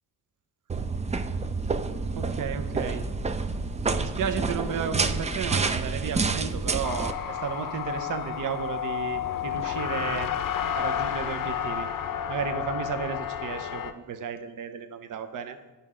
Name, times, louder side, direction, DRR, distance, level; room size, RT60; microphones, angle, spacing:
sound 1, 0.7-7.1, right 4 dB, 20° right, 0.4 m, -28 dB
voice 1, 2.1-3.0 4.0-10.3 10.7-11.9 12.3-15.6, right 7 dB, 55° right, 9 dB, 0.7 m, -33 dB
sound 2, 6.8-13.9, left 9 dB, 55° left, 0.6 m, -31 dB
9.0 x 5.6 x 3.7 m, 1.1 s
cardioid pair, 80°, 39 cm